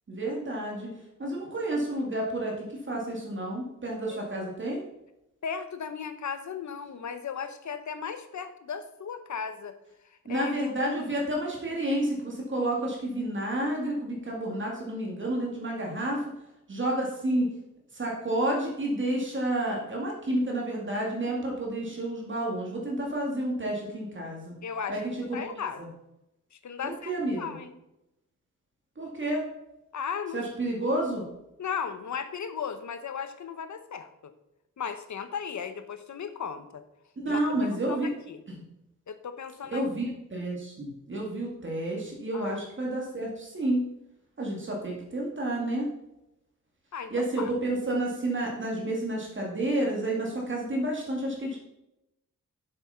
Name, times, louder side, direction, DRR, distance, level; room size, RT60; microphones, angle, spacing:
voice 1, 0.1-0.9 1.2-4.8 10.3-16.2 16.7-17.5 17.9-24.5 24.9-25.0 25.3-25.9 26.8-27.6 29.0-29.5 30.3-31.2 37.2-38.1 39.7-43.8 44.4-45.9 47.1-51.6, right 1 dB, 40° right, -2 dB, 2.3 m, -30 dB
voice 2, 5.4-9.8 10.1-10.7 24.6-25.0 25.3-25.8 26.5-27.8 29.9-30.7 31.6-34.3 34.8-36.8 37.2-37.6 37.9-38.4 39.1-39.8 42.3-42.6 46.9-47.5, left 6 dB, 65° left, 10 dB, 1.0 m, -36 dB
7.9 x 6.8 x 5.7 m, 0.88 s
wide cardioid pair, 135°, 32 cm